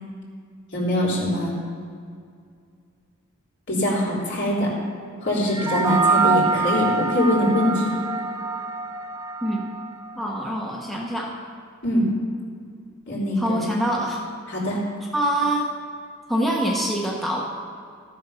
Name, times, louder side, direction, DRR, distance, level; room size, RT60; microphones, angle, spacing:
voice 1, 0.7-1.5 3.7-4.7 5.2-7.9 11.8-12.1 13.1-13.6 14.5-14.8, left 1 dB, 60° left, -5 dB, 3.6 m, -23 dB
sound 1, 5.5-10.1, right 4 dB, 15° right, 0.6 m, -24 dB
voice 2, 10.1-11.3 13.4-14.2 15.1-15.7 16.3-17.4, right 1 dB, ahead, -3 dB, 1.1 m, -24 dB
14.5 x 7.7 x 5.7 m, 2.3 s
head